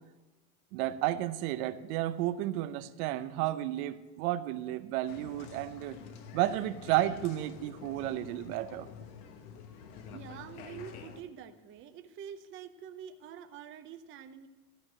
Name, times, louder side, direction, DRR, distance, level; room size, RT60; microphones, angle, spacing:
voice 1, 0.7-6.0 6.3-8.9, right 14 dB, 65° right, 13 dB, 0.7 m, -32 dB
Applause, 5.0-11.2, left 7 dB, 70° left, 1.3 m, -48 dB
voice 2, 10.1-14.5, right 8 dB, 25° right, 8 dB, 0.6 m, -46 dB
13.0 x 4.6 x 7.6 m, 1.2 s
supercardioid pair, 120°, 47 cm